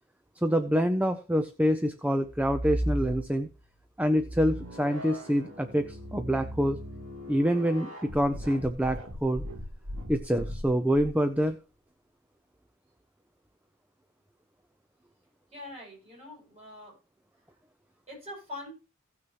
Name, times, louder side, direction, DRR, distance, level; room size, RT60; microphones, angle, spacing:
voice 1, 0.4-3.5 4.0-6.8 7.3-9.4 10.1-11.6, equal, 5° right, 9 dB, 0.5 m, -26 dB
sound 1, 2.2-3.6 4.1-11.1, equal, 75° right, 2.8 m, -37 dB
voice 2, 15.5-17.0 18.1-18.7, left 2 dB, 30° right, -4 dB, 6.6 m, -43 dB
16.5 x 6.3 x 3.0 m, 0.32 s
head